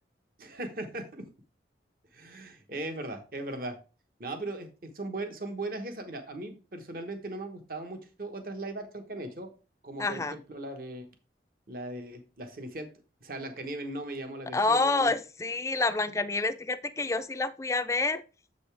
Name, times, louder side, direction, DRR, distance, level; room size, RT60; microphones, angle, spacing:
voice 1, 0.4-1.3 2.1-3.8 4.2-9.5 9.8-11.1 11.7-12.9 13.2-15.1, right 2 dB, 50° right, 6 dB, 1.1 m, -38 dB
voice 2, 10.0-10.3 14.5-18.2, left 3 dB, 15° left, 11 dB, 0.4 m, -28 dB
7.5 x 5.4 x 3.4 m, 0.33 s
head